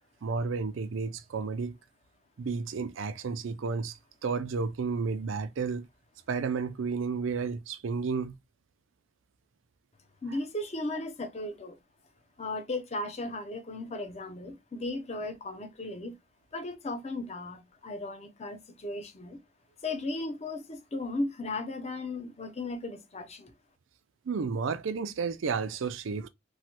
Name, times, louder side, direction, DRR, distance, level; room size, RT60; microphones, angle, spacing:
voice 1, 0.2-1.8 2.4-5.9 6.3-8.4 24.3-26.3, right 5 dB, 85° right, 0.4 m, -32 dB
voice 2, 10.2-11.8 12.4-16.2 16.5-19.4 19.8-23.5, left 2 dB, 35° left, 0.5 m, -36 dB
3.1 x 2.1 x 2.9 m
head